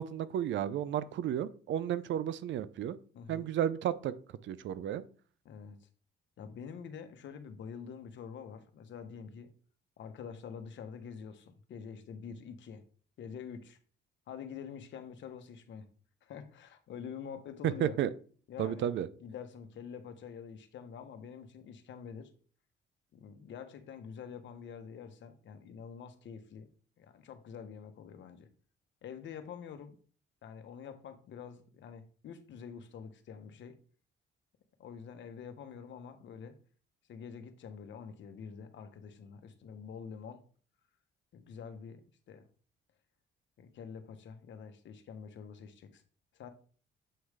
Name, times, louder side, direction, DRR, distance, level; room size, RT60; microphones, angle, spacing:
voice 1, 0.0-3.0 3.3-4.1 4.5-5.0 17.6-18.1 18.6-19.1, right 10 dB, 70° right, 16 dB, 0.5 m, -32 dB
voice 2, 3.1-3.5 5.4-5.9 6.4-9.5 10.0-12.8 13.2-13.8 14.3-15.9 16.2-18.0 18.5-18.9 19.2-22.3 23.1-26.7 27.0-28.5 29.0-30.0 30.4-33.8 34.8-36.6 37.1-40.4 41.3-42.5 43.6-46.0 46.3-46.5, left 7 dB, 70° left, 8 dB, 1.0 m, -46 dB
7.7 x 3.2 x 4.9 m, 0.42 s
cardioid pair, 90°, 20 cm